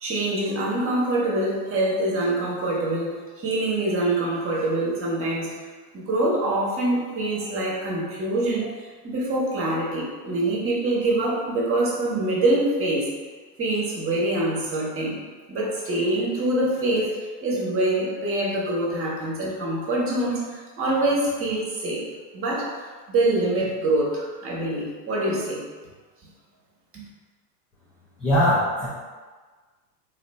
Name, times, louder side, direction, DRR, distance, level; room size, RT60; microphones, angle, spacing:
voice 1, 0.0-5.5 5.9-13.1 13.6-15.2 15.5-22.1 22.3-22.7 23.1-25.6 26.9-27.0, right 1 dB, 25° right, -4 dB, 1.0 m, -25 dB
voice 2, 28.2-28.9, equal, 15° left, -9 dB, 0.3 m, -20 dB
4.0 x 2.7 x 2.2 m, 1.4 s
hypercardioid pair, 90°, 49 cm